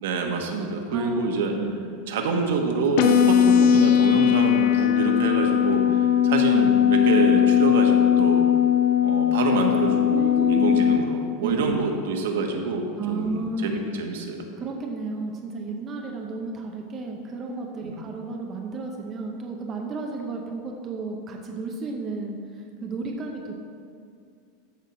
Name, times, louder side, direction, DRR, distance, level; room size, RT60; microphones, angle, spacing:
voice 1, 0.0-1.6 2.1-8.4 9.0-14.4 17.8-18.0, right 3 dB, 75° right, 3 dB, 1.4 m, -26 dB
voice 2, 0.9-1.3 1.6-1.8 10.1-10.8 11.4-11.8 13.0-13.8 14.6-22.4 22.8-23.5, right 4 dB, 20° right, 1 dB, 0.7 m, -32 dB
sound 1, 3.0-11.0, left 9 dB, 50° left, 0.7 m, -19 dB
14.0 x 4.6 x 5.9 m, 2.3 s
supercardioid pair, 180°, 0 cm